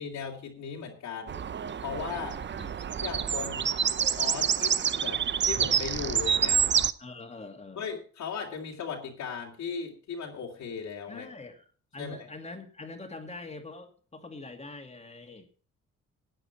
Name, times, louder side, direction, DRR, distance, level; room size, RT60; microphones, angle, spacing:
voice 1, 0.0-1.5 1.8-2.4 3.0-3.7 4.2-6.7 7.8-11.3 12.0-12.3, left 6 dB, 70° left, -2 dB, 2.6 m, -37 dB
sound 1, 1.3-6.9, right 8 dB, 40° right, 0.7 m, -27 dB
voice 2, 7.0-7.8 11.1-15.5, left 3 dB, 20° left, 5 dB, 2.4 m, -44 dB
15.5 x 9.1 x 4.4 m, 0.42 s
cardioid pair, 90°, 30 cm